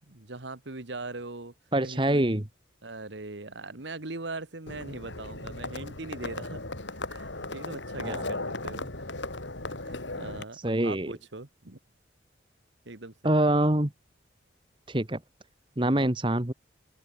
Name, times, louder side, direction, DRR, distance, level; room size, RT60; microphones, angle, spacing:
voice 1, 0.1-1.5 1.8-2.4 2.8-6.6 6.9-9.1 9.7-11.8 12.9-13.3, right 2 dB, 70° right, 1.7 m, -41 dB
voice 2, 1.7-2.5 8.0-8.2 10.6-11.1 13.2-13.9 14.9-15.2 15.8-16.5, right 1 dB, 25° right, 1.4 m, -25 dB
Livestock farm animals working animals, 4.7-10.4, left 2 dB, 75° left, 4.3 m, -37 dB
open air
head